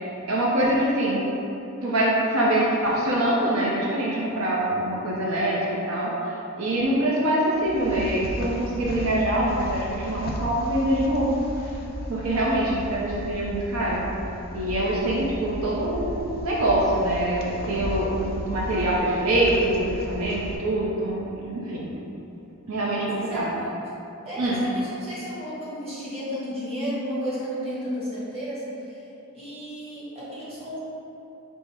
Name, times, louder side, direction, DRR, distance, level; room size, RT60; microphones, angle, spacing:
voice 1, 0.3-1.2 1.8-11.3 12.1-14.0 14.5-21.9 22.7-23.5 24.4-24.6, right 1 dB, 80° right, -5 dB, 0.6 m, -24 dB
sound 1, 7.5-20.6, equal, 45° left, 0.5 m, -35 dB
voice 2, 23.3-23.7 24.2-29.0 29.3-30.8, equal, 30° right, -10 dB, 1.3 m, -33 dB
5.2 x 2.1 x 4.6 m, 3.0 s
head